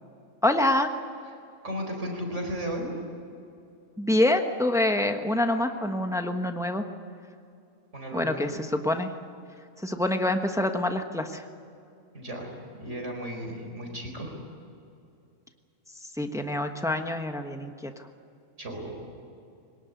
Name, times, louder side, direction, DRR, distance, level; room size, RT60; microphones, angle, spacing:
voice 1, 0.4-0.9 4.0-6.8 8.1-9.1 9.8-11.4 16.2-17.9, left 1 dB, 5° right, 5 dB, 1.1 m, -26 dB
voice 2, 1.6-2.9 7.9-8.6 12.1-12.5 12.8-14.4 18.6-19.1, equal, 60° right, 2 dB, 4.9 m, -34 dB
22.5 x 19.0 x 9.5 m, 2.5 s
omnidirectional pair, 1.4 m